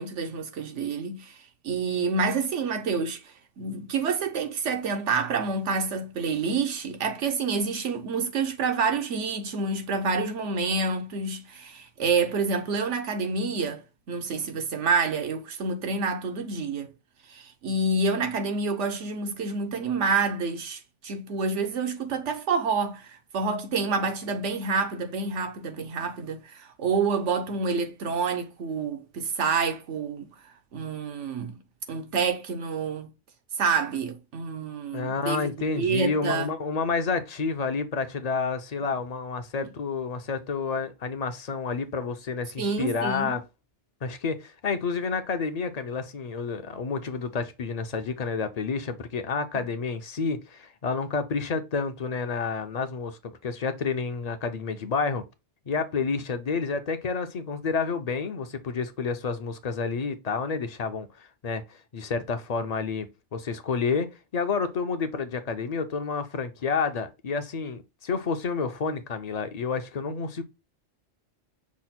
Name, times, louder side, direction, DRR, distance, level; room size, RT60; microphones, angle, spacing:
voice 1, 0.0-1.4 1.6-16.9 17.3-31.6 31.9-33.1 33.6-36.5 42.6-43.4, right 4 dB, 90° right, 1.2 m, -28 dB
voice 2, 34.9-43.4 44.0-55.2 55.7-70.4, left 5 dB, 50° left, 0.5 m, -29 dB
6.0 x 2.1 x 4.1 m
omnidirectional pair, 1.2 m